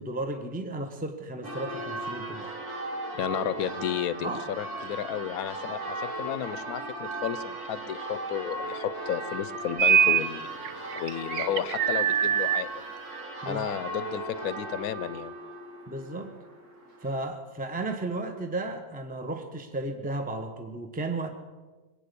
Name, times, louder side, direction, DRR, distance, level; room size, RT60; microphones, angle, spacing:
voice 1, 0.0-2.5 4.2-4.5 13.4-13.7 15.9-16.3 17.0-21.3, right 2 dB, 5° right, 6 dB, 0.9 m, -34 dB
Church bell, 1.4-17.2, right 2 dB, 85° right, 3.4 m, -37 dB
voice 2, 3.2-10.6 10.9-12.8 13.5-15.3, left 10 dB, 75° left, 16 dB, 1.1 m, -33 dB
sound 1, 9.8-10.3 10.6-12.6, right 8 dB, 65° right, 1.0 m, -23 dB
21.5 x 9.0 x 6.8 m, 1.3 s
omnidirectional pair, 1.6 m